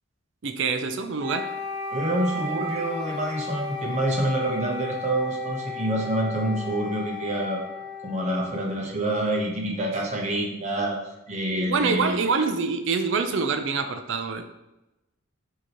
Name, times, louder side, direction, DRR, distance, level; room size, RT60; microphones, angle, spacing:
voice 1, 0.4-1.5 11.5-14.5, right 4 dB, 60° right, 8 dB, 0.4 m, -26 dB
Wind instrument woodwind instrument, 1.2-9.2, left 3 dB, ahead, 0.7 m, -35 dB
voice 2, 1.9-7.6 8.0-11.0 11.3-12.2, right 1 dB, 35° right, -1 dB, 0.8 m, -27 dB
6.1 x 2.8 x 2.9 m, 0.96 s
head